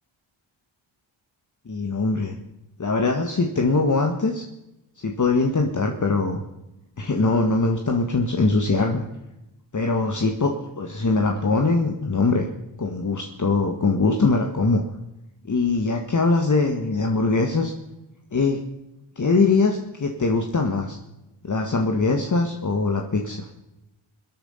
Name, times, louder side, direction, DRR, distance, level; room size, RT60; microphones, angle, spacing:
voice 1, 1.7-2.4 2.8-4.4 5.0-6.4 7.0-9.1 9.7-12.5 12.8-14.8 15.4-17.7 18.3-18.6 19.2-21.0 21.4-23.5, left 3 dB, 35° left, 3 dB, 1.8 m, -22 dB
24.5 x 8.8 x 5.7 m, 0.92 s
cardioid pair, 65°, 49 cm